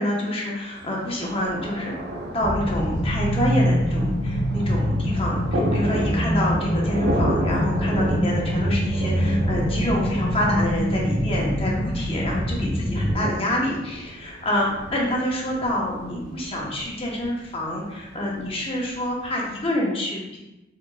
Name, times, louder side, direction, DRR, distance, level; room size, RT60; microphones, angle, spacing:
voice 1, 0.0-1.9 2.3-20.4, left 1 dB, 30° left, -3 dB, 1.0 m, -27 dB
Thunder, 0.8-19.7, right 1 dB, 55° right, 0.5 m, -33 dB
sound 1, 2.4-13.1, equal, 5° left, 1.0 m, -24 dB
4.9 x 3.8 x 2.3 m, 0.98 s
head